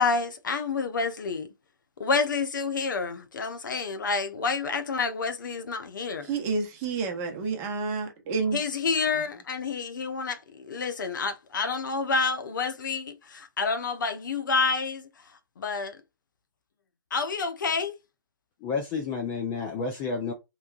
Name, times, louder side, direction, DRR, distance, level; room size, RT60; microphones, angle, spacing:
voice 1, 0.0-1.5 2.0-6.3 8.5-15.0 15.6-16.0 17.1-17.9, left 4 dB, 65° left, 0.7 m, -28 dB
voice 2, 6.2-8.6, right 4 dB, 20° right, 0.9 m, -29 dB
voice 3, 18.6-20.3, left 5 dB, 20° left, 0.5 m, -30 dB
3.4 x 3.1 x 2.4 m
hypercardioid pair, 145°, 11 cm